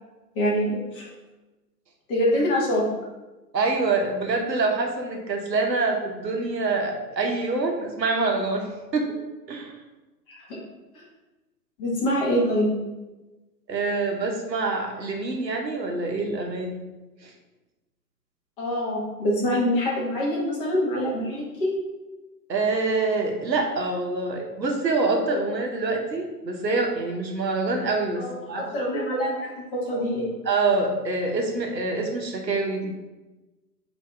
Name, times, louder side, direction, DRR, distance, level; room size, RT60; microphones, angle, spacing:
voice 1, 0.3-1.1 2.1-2.8 10.3-10.6 11.8-12.7 18.6-21.7 28.2-30.3, equal, 35° left, -3 dB, 1.2 m, -25 dB
voice 2, 3.5-8.7 8.9-9.1 9.5-9.7 13.7-16.8 17.2-17.3 22.5-28.7 30.4-32.9, right 3 dB, 85° right, 1 dB, 0.9 m, -25 dB
7.7 x 2.7 x 2.3 m, 1.1 s
figure-of-eight pair, 115°, 50 cm